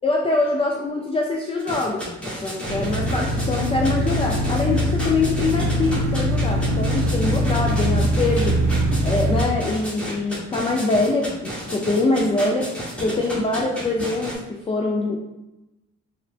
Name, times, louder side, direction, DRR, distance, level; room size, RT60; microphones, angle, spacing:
voice 1, 0.0-8.6 9.0-15.2, left 2 dB, 20° left, -1 dB, 0.3 m, -24 dB
sound 1, 1.6-14.4, equal, 5° left, 0.9 m, -32 dB
sound 2, 2.7-9.4, equal, 80° right, 0.6 m, -22 dB
3.7 x 2.2 x 2.3 m, 0.96 s
cardioid pair, 90°, 30 cm